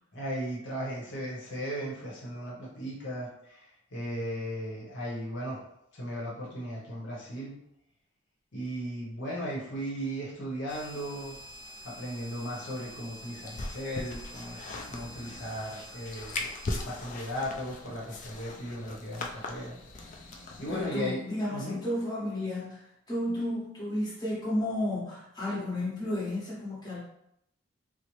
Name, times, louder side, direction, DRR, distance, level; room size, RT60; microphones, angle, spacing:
voice 1, 0.1-5.6 5.9-7.6 8.5-11.4 11.8-16.5 16.8-19.8 20.6-21.2 21.5-21.8, equal, 60° left, -6 dB, 0.9 m, -36 dB
sound 1, 10.7-21.1, left 2 dB, 35° left, 0.4 m, -41 dB
voice 2, 20.7-27.0, left 1 dB, 20° left, -8 dB, 1.2 m, -32 dB
4.1 x 2.0 x 3.0 m, 0.77 s
head